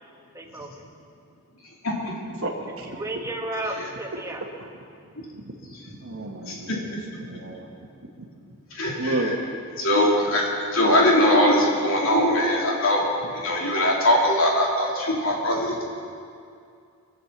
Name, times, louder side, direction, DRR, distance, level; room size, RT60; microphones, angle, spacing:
voice 1, 0.3-0.8 2.8-4.4, right 1 dB, 15° right, 1 dB, 1.3 m, -33 dB
voice 2, 1.8-2.1 3.8-3.9 5.2-5.3 6.5-7.0 7.3-7.4 8.7-9.3 9.8-13.0 13.3-15.8, left 1 dB, 70° left, -3 dB, 3.2 m, -21 dB
voice 3, 2.4-3.0 4.6-4.7 6.0-7.0 7.2-7.7 9.0-9.4, right 2 dB, 70° right, -2 dB, 1.5 m, -31 dB
22.5 x 7.6 x 7.4 m, 2.4 s
head